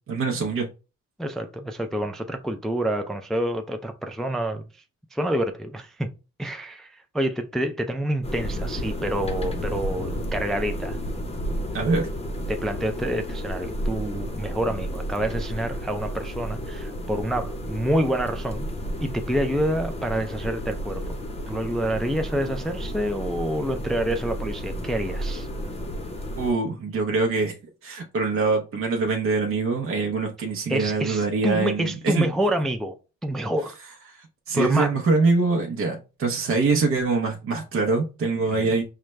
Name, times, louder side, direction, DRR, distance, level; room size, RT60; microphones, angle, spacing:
voice 1, 0.1-0.7 11.7-12.1 26.4-27.5 27.8-32.3 34.1-34.2 34.5-38.8, right 3 dB, 45° right, 0.8 m, -24 dB
voice 2, 1.2-4.6 5.1-6.1 6.4-11.0 12.5-18.7 19.0-21.2 21.5-25.5 30.7-33.0 33.2-33.8 34.5-35.0 38.5-38.7, right 1 dB, ahead, 0.4 m, -27 dB
sound 1, 8.2-26.5, equal, 20° left, 0.7 m, -32 dB
4.8 x 2.2 x 3.1 m
cardioid pair, 90°, 30 cm